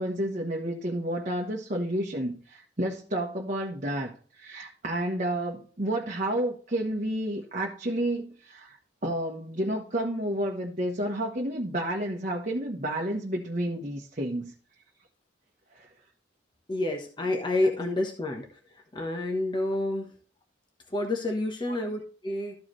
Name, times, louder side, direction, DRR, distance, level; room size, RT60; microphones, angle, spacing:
voice 1, 0.0-8.8 9.0-14.5 15.7-15.9, right 1 dB, 40° right, 0 dB, 1.1 m, -30 dB
voice 2, 16.7-20.1 20.9-22.6, left 2 dB, 25° left, 1 dB, 1.1 m, -29 dB
13.5 x 4.8 x 3.2 m, 0.41 s
head